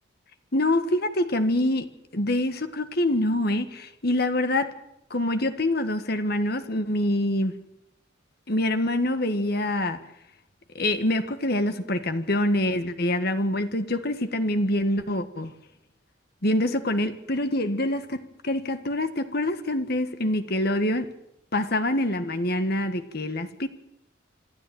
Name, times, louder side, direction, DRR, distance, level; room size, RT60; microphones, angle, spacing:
voice 1, 0.5-4.7 5.1-7.6 8.5-10.0 10.7-15.5 16.4-21.1 21.5-23.7, left 1 dB, 55° left, 1.7 m, -25 dB
26.5 x 12.0 x 9.4 m
head